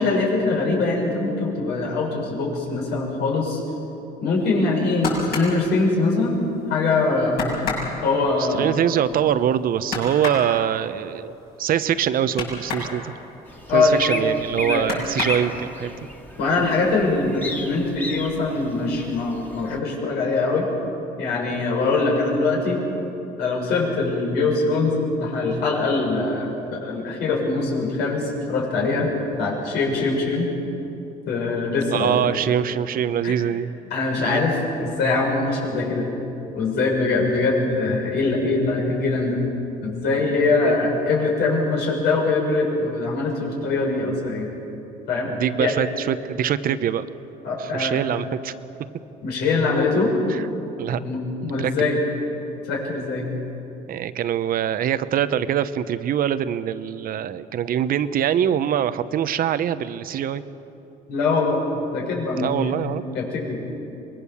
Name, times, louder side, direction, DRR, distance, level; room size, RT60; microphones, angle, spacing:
voice 1, 0.0-3.6 4.2-6.4 6.7-7.7 8.0-8.7 13.7-14.0 14.5-14.8 16.4-20.7 21.2-22.8 23.4-29.1 29.4-30.5 31.2-32.2 33.2-33.3 33.9-36.1 36.5-39.4 39.8-44.5 45.1-45.3 45.6-45.7 47.4-48.0 49.2-50.1 51.0-52.0 52.7-53.3 61.1-61.6 61.9-62.7 63.1-63.6, left 3 dB, 85° left, -1 dB, 6.5 m, -22 dB
sound 1, 4.6-6.6 6.9-7.0 7.3-12.9 13.3-14.4 14.8-15.9 16.3-16.9 17.2-17.9 18.2-18.3, left 4 dB, 65° left, 7.4 m, -31 dB
voice 2, 8.4-13.1 13.7-15.9 31.9-33.7 34.2-34.4 40.6-40.7 45.3-47.1 47.6-48.5 50.3-50.4 50.8-51.0 51.6-51.7 53.9-60.4 62.3-63.0, right 9 dB, 60° right, 13 dB, 0.9 m, -23 dB
sound 2, 13.5-19.8, left 1 dB, 10° left, 2.1 m, -34 dB
24.5 x 21.0 x 7.2 m, 3.0 s
cardioid pair, 110°, 17 cm